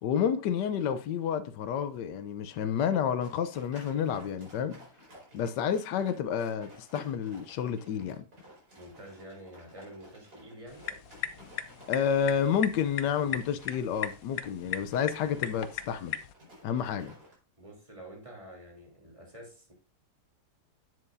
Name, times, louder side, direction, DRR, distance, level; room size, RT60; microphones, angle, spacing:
voice 1, 0.0-4.8 5.3-8.3 11.9-16.2 16.6-17.1, left 8 dB, 85° left, 1.3 m, -30 dB
sound 1, 3.2-17.3, equal, 65° right, 5.0 m, -54 dB
voice 2, 8.8-10.9 17.6-19.7, right 1 dB, 20° right, 3.1 m, -48 dB
sound 2, 10.7-16.3, left 10 dB, 65° left, 1.1 m, -38 dB
11.0 x 7.7 x 2.6 m
omnidirectional pair, 1.8 m